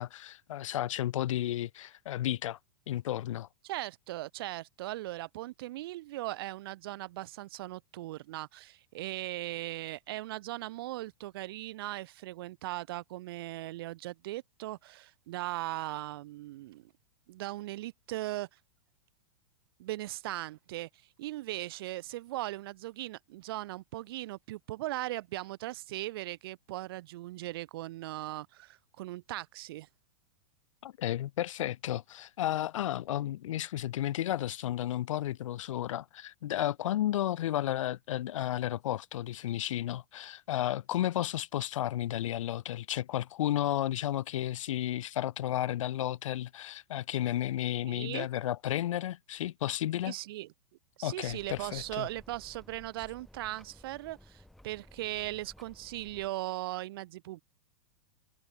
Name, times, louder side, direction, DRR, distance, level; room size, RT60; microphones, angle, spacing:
voice 1, 0.0-2.6 2.9-3.5 30.8-50.1 51.0-52.1, left 13 dB, 75° left, 0.7 m, -33 dB
voice 2, 3.6-16.9 17.3-18.5 19.8-20.9 21.2-29.9 47.9-48.3 50.0-50.5 51.0-57.4, right 17 dB, 45° right, 2.0 m, -39 dB
sound 1, 51.3-56.3, left 1 dB, ahead, 5.2 m, -56 dB
supercardioid pair, 175°, 17 cm